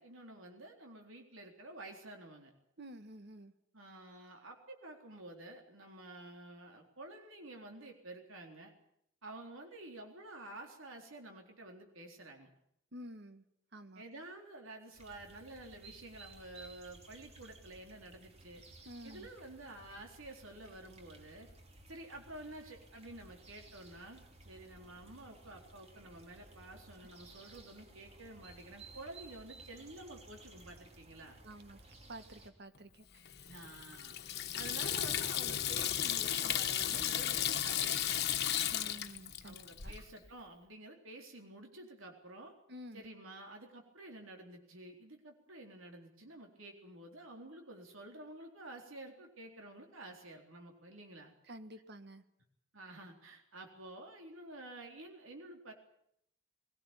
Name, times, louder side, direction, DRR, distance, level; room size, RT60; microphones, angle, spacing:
voice 1, 0.0-2.5 3.7-8.7 9.2-12.5 14.0-18.6 19.0-21.5 21.9-31.4 33.5-34.2 34.5-38.2 39.4-42.5 42.9-51.3 52.7-55.7, right 2 dB, 75° right, 3 dB, 3.9 m, -50 dB
voice 2, 2.8-3.5 12.9-13.4 13.7-14.0 18.8-19.3 31.4-31.8 32.1-33.0 38.7-39.6 39.8-39.9 42.7-43.0 51.5-52.2, equal, 55° right, 10 dB, 1.7 m, -50 dB
sound 1, 14.9-32.5, right 2 dB, 30° right, 3.2 m, -57 dB
Water tap faucet / Sink (filling or washing), 33.2-40.0, left 10 dB, 55° left, 1.4 m, -35 dB
21.5 x 18.0 x 9.1 m, 0.73 s
head